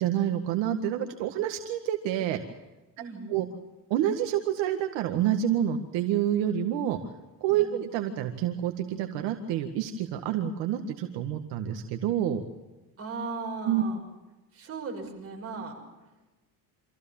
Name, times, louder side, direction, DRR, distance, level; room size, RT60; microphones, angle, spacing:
voice 1, 0.0-2.4 3.3-3.5 3.9-7.0 7.4-12.4 13.6-13.8, right 11 dB, 75° right, 5 dB, 1.9 m, -28 dB
voice 2, 3.0-3.5 7.5-7.8 13.0-14.0 14.5-15.7, right 3 dB, 30° right, 1 dB, 6.1 m, -37 dB
26.0 x 15.5 x 7.2 m, 1.1 s
cardioid pair, 125°, 45 cm